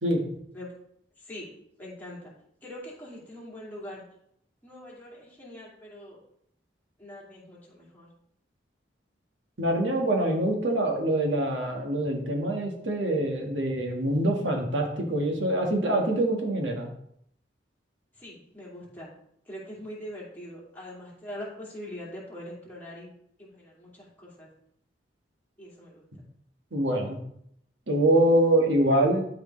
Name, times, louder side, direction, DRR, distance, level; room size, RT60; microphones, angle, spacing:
voice 1, 1.2-1.5 1.8-2.3 2.6-4.0 4.6-6.2 7.0-8.1 18.1-19.1 19.4-23.1 23.4-24.5 25.6-26.0, left 1 dB, 10° left, -6 dB, 2.6 m, -42 dB
voice 2, 9.6-16.9 26.7-27.2 27.9-29.2, right 1 dB, 85° right, 2 dB, 1.7 m, -25 dB
12.5 x 4.9 x 3.2 m, 0.72 s
head